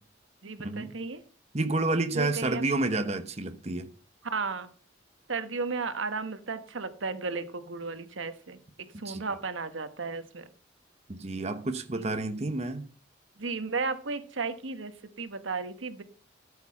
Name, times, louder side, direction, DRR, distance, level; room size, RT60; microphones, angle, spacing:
voice 1, 0.4-1.2 2.1-2.6 4.2-4.7 5.3-10.5 11.9-12.1 13.4-16.0, right 4 dB, 90° right, 1.3 m, -34 dB
voice 2, 1.5-3.9 9.0-9.2 11.1-12.8, right 2 dB, 35° right, 1.0 m, -29 dB
13.0 x 7.2 x 5.6 m
head